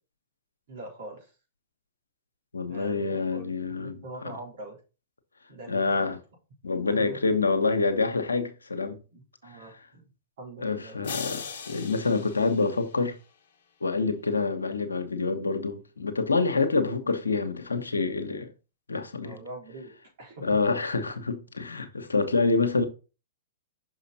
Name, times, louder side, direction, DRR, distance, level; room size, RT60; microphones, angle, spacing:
voice 1, 0.7-1.3 2.7-4.8 5.5-6.2 6.8-7.3 9.1-10.0 10.4-11.0 16.9-17.1 19.2-19.9 20.2-20.5, right 2 dB, 60° right, 3.7 m, -44 dB
voice 2, 2.5-4.0 5.7-6.2 6.6-9.0 10.6-13.2 13.8-18.5 18.9-19.4 20.4-22.8, left 3 dB, 85° left, 1.0 m, -27 dB
sound 1, 11.0-13.4, left 6 dB, 60° left, 1.2 m, -40 dB
6.2 x 4.9 x 4.1 m
hypercardioid pair, 110°, 0 cm